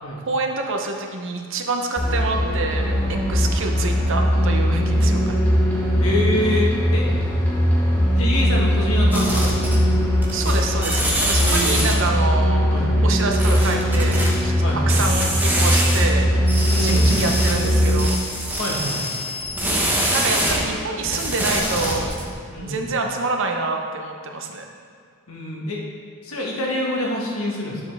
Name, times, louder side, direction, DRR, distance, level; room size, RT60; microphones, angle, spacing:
voice 1, 0.2-5.4 10.3-12.7 13.0-14.5 14.9-18.2 20.0-22.2 22.6-24.6, right 3 dB, 60° right, 3 dB, 0.8 m, -27 dB
sound 1, 2.0-18.0, equal, 10° left, 1.7 m, -20 dB
voice 2, 6.0-7.0 8.1-9.6 11.4-12.0 12.7-12.9 14.6-15.0 16.7-17.3 18.6-19.0 19.6-20.4 21.1-21.2 22.5-22.9 25.3-25.8 26.2-27.8, left 1 dB, 70° left, -2 dB, 1.5 m, -26 dB
sound 2, 9.1-10.0 10.2-12.1 13.3-14.3 14.9-16.1 16.4-20.6 21.0-22.3, right 1 dB, 10° right, 1.0 m, -25 dB
9.7 x 7.3 x 3.5 m, 2.1 s
head